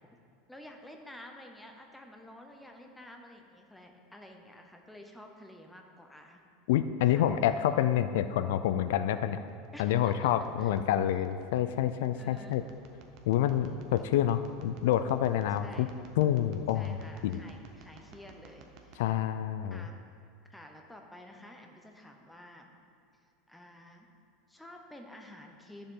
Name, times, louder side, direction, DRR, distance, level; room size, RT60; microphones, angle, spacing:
voice 1, 0.5-6.4 7.0-7.3 9.7-10.8 12.1-12.6 13.3-13.8 15.6-15.9 16.7-19.1 19.7-20.1 20.5-22.8 23.5-24.1 24.5-25.9, left 1 dB, 5° left, 2 dB, 0.8 m, -51 dB
voice 2, 6.7-9.4 9.8-12.6 13.3-15.9 16.2-17.0 17.2-17.4 19.0-19.9, left 11 dB, 80° left, 11 dB, 0.4 m, -28 dB
sound 1, 9.2-19.0, right 4 dB, 45° right, 0.9 m, -56 dB
12.0 x 6.8 x 3.8 m, 2.3 s
supercardioid pair, 155°, 0 cm